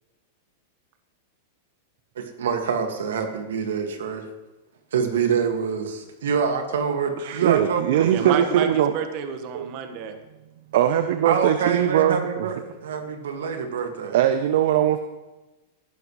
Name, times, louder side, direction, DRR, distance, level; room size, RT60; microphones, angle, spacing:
voice 1, 2.2-4.3 4.9-8.4 11.3-14.2, right 6 dB, 85° right, 5 dB, 2.0 m, -26 dB
voice 2, 7.2-9.0 9.5-9.7 10.7-12.5 14.1-15.0, right 10 dB, 70° right, 9 dB, 0.7 m, -21 dB
voice 3, 8.1-10.1, right 7 dB, 45° right, 7 dB, 1.5 m, -29 dB
18.5 x 11.5 x 3.2 m, 1.1 s
hypercardioid pair, 135°, 0 cm